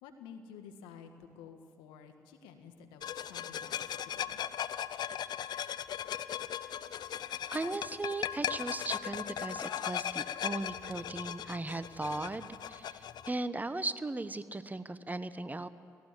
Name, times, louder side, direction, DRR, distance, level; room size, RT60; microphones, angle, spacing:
voice 1, 0.0-4.4, left 7 dB, 80° left, 6 dB, 1.7 m, -52 dB
sound 1, 3.0-13.3, left 10 dB, 60° left, 0.7 m, -38 dB
voice 2, 7.5-15.7, right 2 dB, 20° right, 13 dB, 1.1 m, -37 dB
17.5 x 17.5 x 8.4 m, 2.6 s
hypercardioid pair, 50°, 8 cm